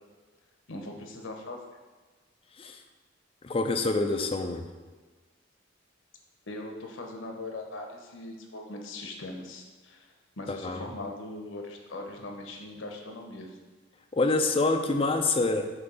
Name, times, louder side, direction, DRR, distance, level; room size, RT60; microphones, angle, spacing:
voice 1, 0.7-1.6 6.5-10.1 10.4-13.6, left 2 dB, 85° left, 2 dB, 0.9 m, -40 dB
voice 2, 3.4-4.7 10.5-10.9 14.1-15.7, left 3 dB, 30° left, 5 dB, 0.4 m, -26 dB
6.6 x 2.7 x 5.4 m, 1.3 s
head